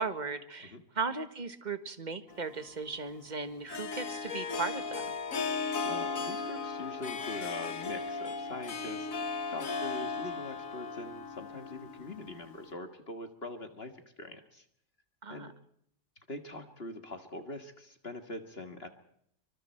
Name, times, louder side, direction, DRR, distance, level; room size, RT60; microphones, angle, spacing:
voice 1, 0.0-5.1 15.2-15.5, right 4 dB, 30° right, 10 dB, 1.6 m, -37 dB
Harp, 2.3-12.7, left 4 dB, 65° left, 1.8 m, -37 dB
voice 2, 5.8-14.7 15.3-15.5 16.3-18.9, left 2 dB, 40° left, 7 dB, 2.0 m, -43 dB
27.0 x 25.0 x 4.5 m, 0.71 s
omnidirectional pair, 1.6 m